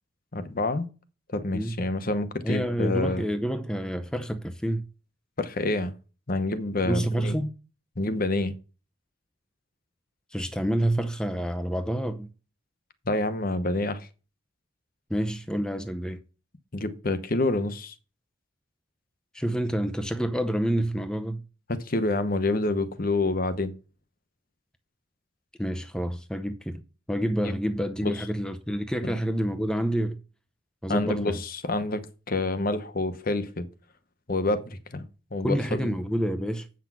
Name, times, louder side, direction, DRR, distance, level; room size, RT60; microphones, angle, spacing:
voice 1, 0.3-0.9 1.3-3.2 5.4-5.9 6.3-7.4 8.0-8.6 13.1-14.1 16.7-17.9 21.7-23.7 27.4-27.5 28.0-28.1 29.0-29.1 30.9-33.7 34.3-35.0 35.3-35.9, left 2 dB, 45° left, 0.9 m, -27 dB
voice 2, 2.4-4.8 6.8-7.5 10.3-12.3 15.1-16.2 19.3-21.4 25.6-26.8 27.1-30.2 30.8-31.3 35.4-36.7, right 1 dB, 5° left, 0.6 m, -28 dB
8.3 x 6.0 x 6.0 m
head